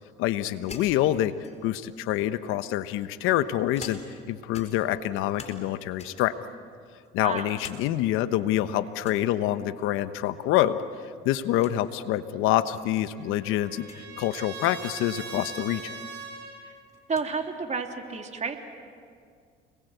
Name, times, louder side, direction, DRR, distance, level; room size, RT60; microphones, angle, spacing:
voice 1, 0.2-1.3 1.6-4.0 4.3-6.3 7.1-10.8 11.2-15.9, left 13 dB, 75° left, 12 dB, 1.1 m, -26 dB
sound 1, 0.7-1.9 2.7-4.3 4.5-5.7 6.0-6.4 6.9-7.8 8.2-8.3 9.0-9.3 10.7-11.1 11.3-11.4 11.6-11.8 12.6-12.7 13.8-14.1 15.7-15.8 16.2-17.3, left 4 dB, 30° left, 4.5 m, -46 dB
Trumpet, 12.8-16.6, right 4 dB, 55° right, 6.9 m, -41 dB
voice 2, 17.1-18.6, right 5 dB, 35° right, 4 dB, 3.3 m, -31 dB
30.0 x 21.5 x 8.1 m, 2.2 s
supercardioid pair, 80°, 21 cm